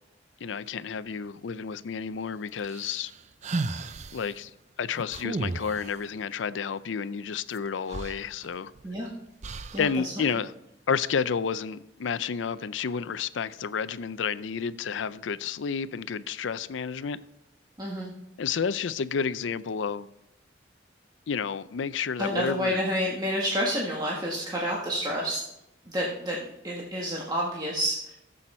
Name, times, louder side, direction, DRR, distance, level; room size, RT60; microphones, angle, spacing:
voice 1, 0.4-3.1 4.1-4.5 4.8-8.7 9.8-10.5 10.9-17.2 18.4-20.1 21.3-22.8, left 6 dB, 85° left, 0.5 m, -30 dB
sound 1, 2.6-4.3 5.1-6.0 7.5-7.6 7.9-8.9 9.4-9.9, right 3 dB, 40° right, 0.5 m, -34 dB
voice 2, 9.7-10.1 17.8-18.1 22.2-25.4 25.8-28.2, equal, 20° right, 1.5 m, -29 dB
15.0 x 7.7 x 4.3 m
head